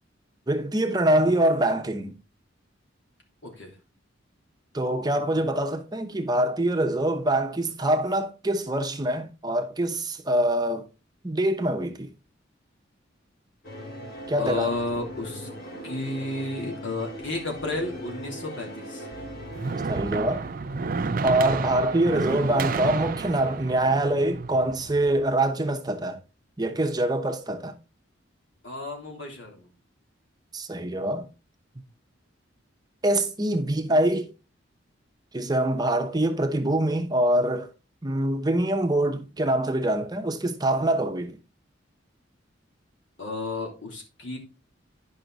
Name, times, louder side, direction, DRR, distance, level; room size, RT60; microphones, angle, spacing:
voice 1, 0.5-2.2 4.7-10.9 11.2-12.1 14.3-14.7 19.9-20.4 21.2-26.2 26.6-27.7 30.5-31.3 33.0-34.3 35.3-37.7 38.0-41.4, right 1 dB, 20° right, 0.8 m, -24 dB
voice 2, 3.4-3.7 14.4-15.5 15.8-19.1 28.6-29.7 43.2-44.4, left 2 dB, 70° left, 3.2 m, -32 dB
sound 1, 13.6-22.3, equal, 55° left, 2.7 m, -41 dB
sound 2, 19.1-25.3, right 4 dB, 45° right, 0.5 m, -31 dB
10.5 x 5.6 x 4.0 m
head